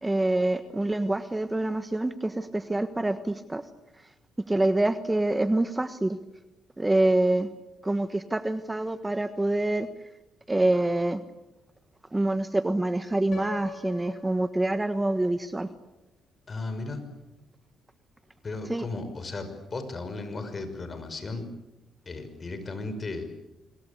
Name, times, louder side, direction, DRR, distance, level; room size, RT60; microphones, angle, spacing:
voice 1, 0.0-3.6 4.5-6.2 6.8-7.5 7.8-9.9 10.5-11.2 12.1-15.7 18.7-18.8, right 2 dB, 15° right, 10 dB, 1.3 m, -26 dB
Piano, 13.3-15.3, left 5 dB, 60° left, 6.6 m, -42 dB
voice 2, 16.5-17.1 18.4-21.5 22.1-23.2, left 3 dB, 35° left, 9 dB, 5.8 m, -35 dB
26.0 x 23.0 x 8.7 m, 1.0 s
cardioid pair, 90°, 0 cm